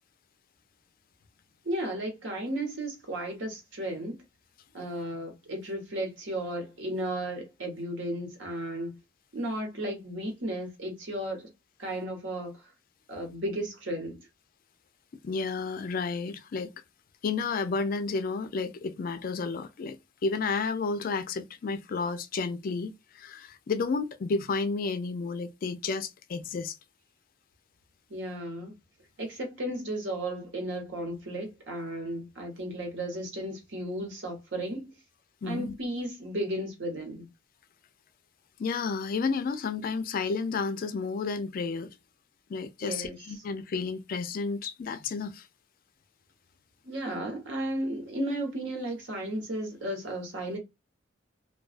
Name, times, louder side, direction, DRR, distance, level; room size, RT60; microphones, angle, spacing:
voice 1, 1.6-4.2 4.7-9.0 9.3-11.4 11.8-12.7 13.1-14.2 28.1-28.7 29.2-34.9 35.4-37.3 42.8-43.4 46.8-50.6, right 1 dB, 70° right, 1.1 m, -34 dB
voice 2, 15.2-16.7 17.2-20.0 20.2-26.8 35.4-35.7 38.6-41.9 42.5-45.5, left 4 dB, 50° left, 0.3 m, -31 dB
2.3 x 2.2 x 2.4 m
head